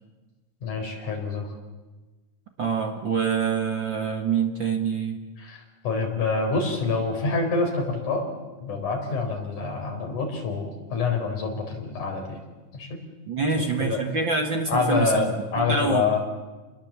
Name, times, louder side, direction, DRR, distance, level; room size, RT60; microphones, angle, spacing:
voice 1, 0.6-1.5 5.4-8.3 8.6-12.4 12.7-13.0 13.8-14.0 14.7-16.2, left 4 dB, 70° left, 3 dB, 5.8 m, -26 dB
voice 2, 2.6-5.2 13.3-16.2, right 5 dB, 45° right, 4 dB, 1.9 m, -26 dB
29.5 x 21.0 x 7.5 m, 1.2 s
omnidirectional pair, 3.7 m